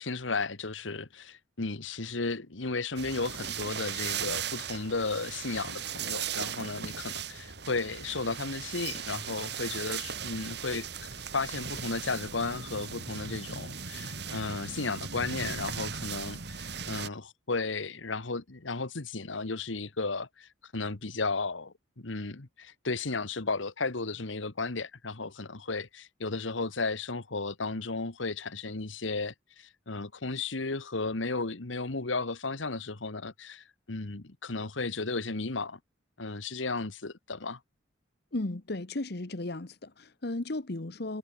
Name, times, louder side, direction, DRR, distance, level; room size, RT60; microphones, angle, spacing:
voice 1, 0.0-11.1 11.3-35.8 36.2-37.6, left 3 dB, 80° left, 1.5 m, -34 dB
sound 1, 3.0-17.1, right 7 dB, 60° right, 3.1 m, -38 dB
voice 2, 38.3-41.2, left 2 dB, 55° left, 1.2 m, -35 dB
head